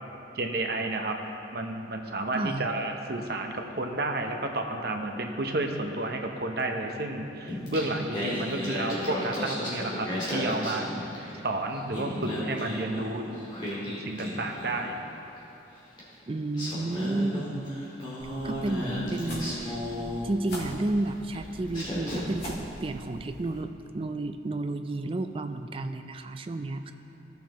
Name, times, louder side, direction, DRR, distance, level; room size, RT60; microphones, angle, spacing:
voice 1, 0.3-1.2 1.5-10.9 11.4-13.2 13.9-15.0, right 2 dB, 55° right, 3 dB, 0.8 m, -31 dB
voice 2, 2.3-2.7 16.3-17.8 18.4-19.8 20.2-26.9, right 2 dB, 30° right, 8 dB, 0.3 m, -31 dB
Singing, 7.5-11.4 11.7-15.0 16.0-16.1 16.5-20.7 21.3-21.5 21.7-22.5, left 1 dB, 25° left, 2.2 m, -34 dB
sound 1, 18.2-23.6, equal, 55° left, 1.9 m, -43 dB
15.5 x 7.0 x 3.0 m, 2.9 s
head